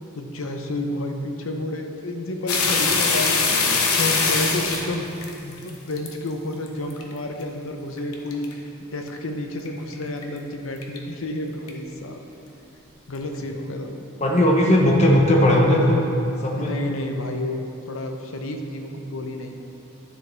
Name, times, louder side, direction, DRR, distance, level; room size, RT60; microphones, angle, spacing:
voice 1, 0.1-5.1 5.4-12.2 13.1-14.0 16.6-19.6, left 1 dB, 65° left, 4 dB, 0.7 m, -30 dB
sound 1, 2.5-6.1 6.7-7.0 7.4-7.5 8.0-8.5 9.1-9.2 9.7-9.8 9.9-10.2 10.8-11.0 11.7-11.8, left 4 dB, 90° left, 0.9 m, -22 dB
voice 2, 14.2-16.0 16.4-16.7, left 1 dB, 30° left, 0 dB, 0.9 m, -17 dB
10.5 x 6.6 x 3.4 m, 2.8 s
head